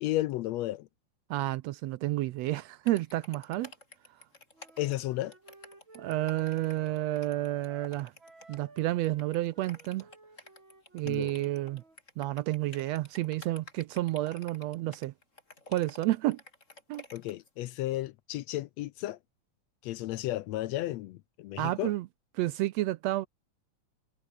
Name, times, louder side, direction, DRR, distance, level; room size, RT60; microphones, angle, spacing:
voice 1, 0.0-0.9 4.8-5.3 11.0-11.4 17.1-19.2 19.8-21.9, left 15 dB, 75° left, 1.7 m, -33 dB
voice 2, 1.3-3.7 6.0-8.1 8.5-10.1 10.9-11.8 12.2-15.1 15.7-16.4 16.9-17.0 21.6-22.1 22.4-23.3, right 16 dB, 75° right, 1.6 m, -30 dB
sound 1, 2.8-17.5, left 2 dB, 25° left, 4.8 m, -51 dB
Wind instrument woodwind instrument, 4.5-12.0, right 2 dB, 40° right, 7.9 m, -55 dB
omnidirectional pair, 3.4 m